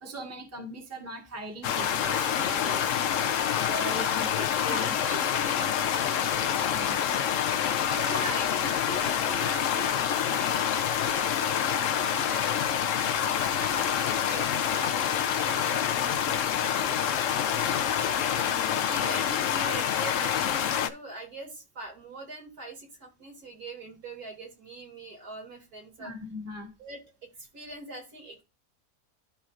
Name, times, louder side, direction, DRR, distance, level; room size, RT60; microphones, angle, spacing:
voice 1, 0.0-4.9 6.6-7.1 7.7-8.5 18.1-18.9 26.0-26.7, right 1 dB, 10° right, 1.5 m, -41 dB
sound 1, 1.6-20.9, left 9 dB, 60° left, 0.9 m, -27 dB
voice 2, 4.7-6.3 7.5-17.6 18.9-26.1 26.8-27.0 27.4-28.4, right 2 dB, 65° right, 3.2 m, -43 dB
12.5 x 4.4 x 2.5 m
omnidirectional pair, 1.7 m